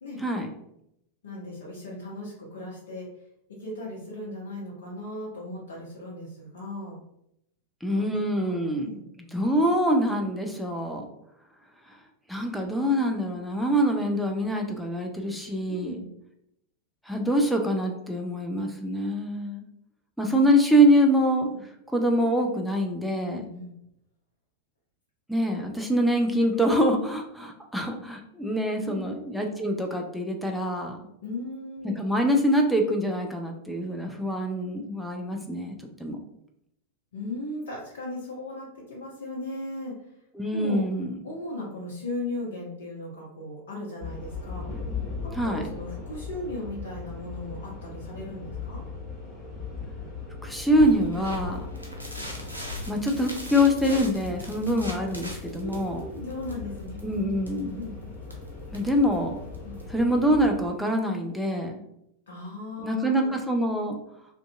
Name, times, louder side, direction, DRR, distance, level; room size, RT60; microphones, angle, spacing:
voice 1, 1.2-3.1 3.6-7.0 7.9-8.0 8.3-9.1 15.7-16.1 23.3-23.7 28.8-29.1 31.2-32.0 37.1-39.9 40.5-40.8 41.2-44.7 45.2-48.8 54.8-54.9 55.6-57.2 57.5-57.9 59.6-59.8 62.3-63.3, left 2 dB, 65° left, -4 dB, 0.6 m, -37 dB
voice 2, 7.8-8.9 9.3-11.0 11.9-12.0 12.3-16.0 17.1-19.6 20.2-21.5 21.9-23.4 25.3-31.0 31.8-36.2 40.4-41.2 45.3-45.6 50.4-51.7 52.9-56.0 57.0-57.8 58.7-59.3 59.9-61.8 62.8-64.0, equal, ahead, 2 dB, 0.4 m, -25 dB
sound 1, 44.0-60.6, left 4 dB, 20° left, 0.9 m, -39 dB
sound 2, 50.8-59.9, left 1 dB, 85° right, 0.5 m, -40 dB
2.6 x 2.4 x 2.3 m, 0.79 s
figure-of-eight pair, 90°, 0 cm